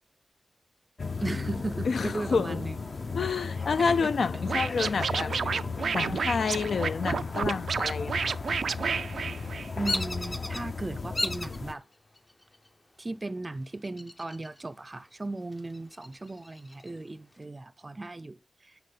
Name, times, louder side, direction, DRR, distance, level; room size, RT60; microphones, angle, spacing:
sound 1, 1.0-11.7, left 4 dB, 50° left, 0.8 m, -35 dB
voice 1, 1.2-2.8 3.9-4.0 4.8-4.9 9.8-11.8 13.0-18.7, right 2 dB, 25° right, 0.5 m, -36 dB
voice 2, 1.8-2.6 3.1-5.3 5.9-8.3, left 5 dB, 75° left, 0.5 m, -29 dB
Scratching (performance technique), 4.5-10.0, right 6 dB, 85° right, 0.3 m, -30 dB
Bird vocalization bird call bird song, 9.8-10.6 11.1-11.6 12.2-12.7 13.8-14.6 14.9-15.0 15.5-16.9, left 2 dB, 25° left, 0.6 m, -34 dB
9.4 x 4.6 x 4.0 m
wide cardioid pair, 115°, 0 cm